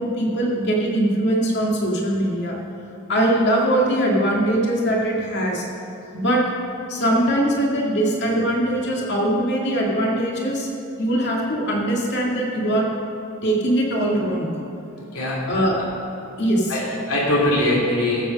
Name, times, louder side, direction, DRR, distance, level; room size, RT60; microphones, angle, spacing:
voice 1, 0.0-2.6 3.1-5.6 6.1-6.4 6.9-10.7 11.0-12.9 13.4-14.5 15.5-15.7 16.4-16.8, right 1 dB, 50° left, -2 dB, 2.1 m, -21 dB
voice 2, 15.0-15.8 16.7-18.2, left 1 dB, 85° left, -4 dB, 3.2 m, -22 dB
14.0 x 7.8 x 5.3 m, 2.9 s
head